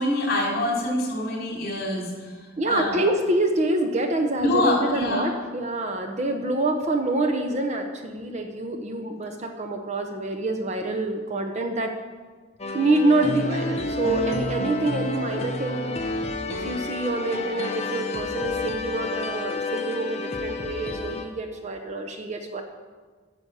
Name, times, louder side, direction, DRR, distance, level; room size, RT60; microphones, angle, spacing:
voice 1, 0.0-2.1 2.7-3.0 4.4-5.3, left 1 dB, 45° left, -2 dB, 3.4 m, -25 dB
voice 2, 2.6-11.9 12.7-15.9 16.4-22.6, right 2 dB, 35° right, 4 dB, 0.8 m, -26 dB
sound 1, 12.6-21.2, left 2 dB, 30° left, 0.9 m, -30 dB
9.5 x 7.0 x 6.9 m, 1.4 s
head